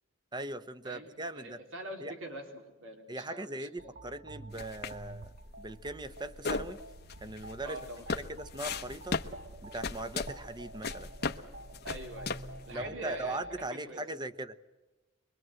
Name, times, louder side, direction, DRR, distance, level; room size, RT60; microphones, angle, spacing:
voice 1, 0.3-1.6 2.0-2.1 3.1-5.3 5.6-6.8 7.2-7.8 8.3-9.2 9.6-11.1 12.7-14.5, right 2 dB, 20° right, 12 dB, 1.0 m, -39 dB
voice 2, 0.8-3.9 7.6-8.2 11.8-12.3 12.7-13.4 13.7-14.0, right 1 dB, 85° right, 3 dB, 4.1 m, -44 dB
sound 1, 3.8-13.7, right 1 dB, 50° right, 0.9 m, -49 dB
sound 2, 4.5-12.7, left 4 dB, 55° left, 1.0 m, -38 dB
24.0 x 22.5 x 7.8 m, 1.1 s
head